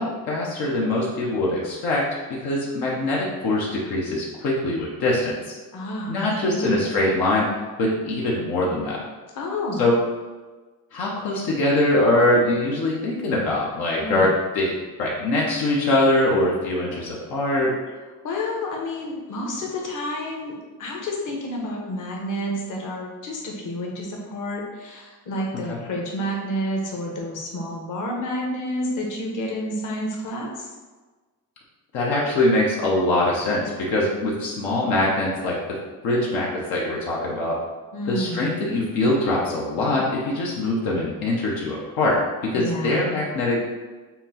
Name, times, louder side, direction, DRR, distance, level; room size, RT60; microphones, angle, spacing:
voice 1, 0.0-2.0 2.3-5.4 6.1-7.5 7.8-9.0 9.8-10.0 10.9-14.7 15.0-17.7 25.7-25.8 31.9-35.8 36.0-37.6 38.1-43.6, left 1 dB, 90° left, -4 dB, 0.8 m, -23 dB
voice 2, 5.7-6.8 9.3-9.8 14.0-14.3 18.2-20.5 20.8-30.7 37.9-38.5 42.5-43.1, left 1 dB, 60° left, -1 dB, 1.0 m, -29 dB
5.6 x 2.1 x 2.8 m, 1.3 s
cardioid pair, 85°, 35 cm